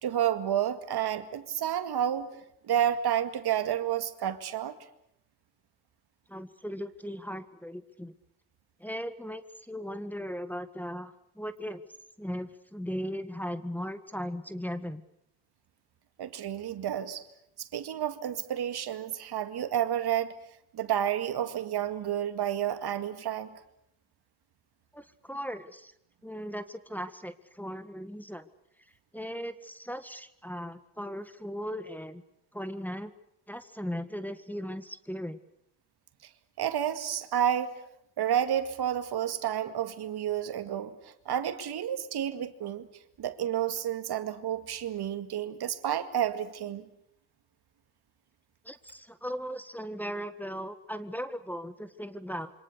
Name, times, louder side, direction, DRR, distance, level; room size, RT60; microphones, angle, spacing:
voice 1, 0.0-2.3 2.6-4.8 16.2-17.2 17.6-20.3 20.7-23.5 36.6-37.8 38.2-42.9 43.2-46.8, right 10 dB, 55° right, 10 dB, 2.1 m, -30 dB
voice 2, 6.3-8.1 8.8-11.8 12.2-15.0 24.9-25.9 26.2-28.5 29.1-32.2 32.5-33.1 33.5-35.4 48.6-52.5, equal, 5° left, 10 dB, 1.7 m, -38 dB
27.5 x 25.0 x 6.7 m, 0.75 s
hypercardioid pair, 55°, 45 cm